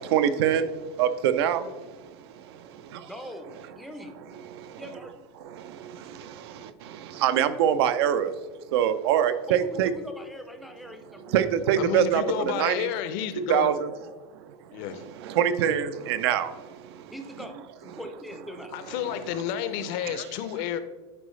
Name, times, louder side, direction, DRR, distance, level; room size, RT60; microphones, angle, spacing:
voice 1, 0.0-3.1 4.3-4.8 5.4-8.4 8.7-9.9 11.2-12.9 13.4-13.9 14.2-17.1 20.0-20.2, right 9 dB, 65° right, 12 dB, 0.6 m, -26 dB
voice 2, 3.1-4.2 4.8-5.2 9.5-11.4 17.1-18.8, equal, ahead, 5 dB, 0.5 m, -42 dB
voice 3, 11.8-13.7 14.7-15.0 18.7-20.8, left 9 dB, 45° left, 11 dB, 0.6 m, -30 dB
10.0 x 4.7 x 3.2 m, 1.3 s
supercardioid pair, 160°, 14 cm